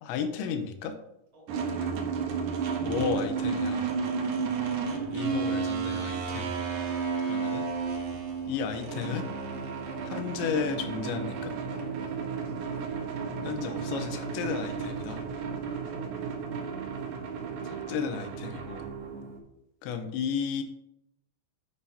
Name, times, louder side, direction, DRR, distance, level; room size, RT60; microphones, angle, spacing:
voice 1, 0.0-0.9 2.9-3.9 5.1-6.5 7.2-7.7 8.5-9.3 10.0-11.5 13.4-15.2 17.6-18.9 19.8-20.6, left 6 dB, 80° left, 7 dB, 3.2 m, -33 dB
voice 2, 1.3-2.0 11.7-12.7 15.3-16.6 19.1-19.2, right 1 dB, 25° right, -4 dB, 2.2 m, -54 dB
sound 1, 1.5-19.4, right 5 dB, 75° right, 1.9 m, -32 dB
9.6 x 8.6 x 2.8 m, 0.83 s
omnidirectional pair, 5.2 m